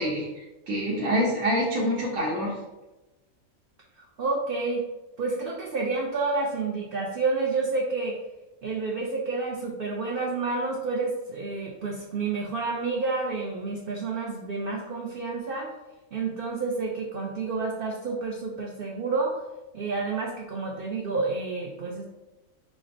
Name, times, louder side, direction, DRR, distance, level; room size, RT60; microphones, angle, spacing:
voice 1, 0.0-2.6, equal, 90° right, -5 dB, 1.2 m, -26 dB
voice 2, 4.0-4.8 5.2-8.2 8.6-15.7 16.1-19.4 19.7-22.0, right 3 dB, 65° right, -2 dB, 0.5 m, -29 dB
6.0 x 2.0 x 2.5 m, 1.0 s
omnidirectional pair, 1.5 m